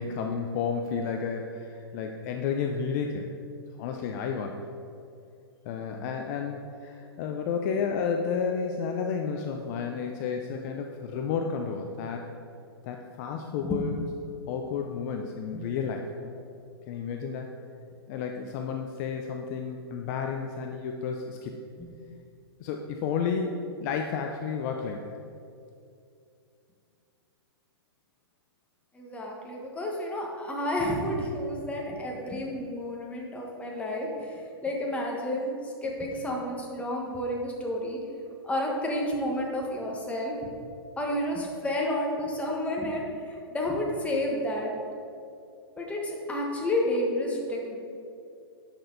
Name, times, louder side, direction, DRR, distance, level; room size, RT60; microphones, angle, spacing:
voice 1, 0.0-3.3 3.8-4.6 5.6-12.3 12.9-14.0 14.5-16.3 16.9-17.5 18.1-21.6 22.6-25.1, left 6 dB, 40° left, 3 dB, 0.6 m, -31 dB
voice 2, 28.9-38.0 38.4-40.4 41.0-44.7 45.8-47.8, left 1 dB, 10° left, -2 dB, 1.5 m, -31 dB
10.0 x 6.3 x 4.0 m, 2.5 s
hypercardioid pair, 120°, 14 cm